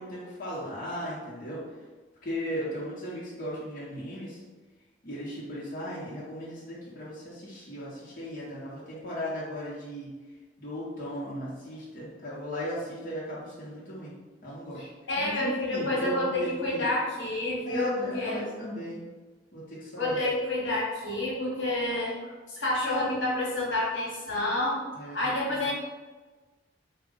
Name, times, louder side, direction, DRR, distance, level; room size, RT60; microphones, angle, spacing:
voice 1, 0.0-1.6 2.2-4.4 5.0-10.1 10.6-14.2 14.4-14.8 15.2-16.8 17.6-19.0 19.5-20.2 24.9-25.7, equal, 45° left, -8 dB, 0.8 m, -36 dB
voice 2, 14.8-18.4 20.0-25.7, left 2 dB, 75° left, -5 dB, 1.1 m, -29 dB
3.5 x 2.2 x 3.7 m, 1.3 s
head